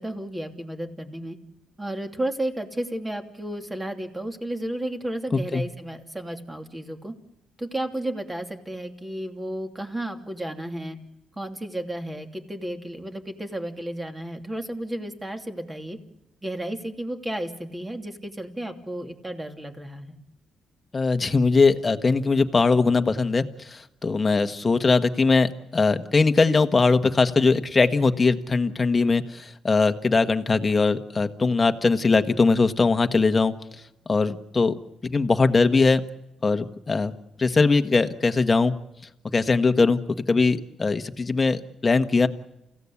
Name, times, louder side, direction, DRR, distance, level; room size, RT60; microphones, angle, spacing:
voice 1, 0.0-1.4 1.8-7.1 7.6-11.0 11.4-16.0 16.4-20.2, right 1 dB, 15° right, 4 dB, 2.9 m, -33 dB
voice 2, 5.3-5.6 20.9-33.5 34.1-34.8 35.0-36.0 36.4-37.1 37.4-38.7 39.3-40.0 40.3-42.3, left 4 dB, 30° left, 8 dB, 1.5 m, -21 dB
29.0 x 16.5 x 8.5 m, 0.91 s
cardioid pair, 90°, 0 cm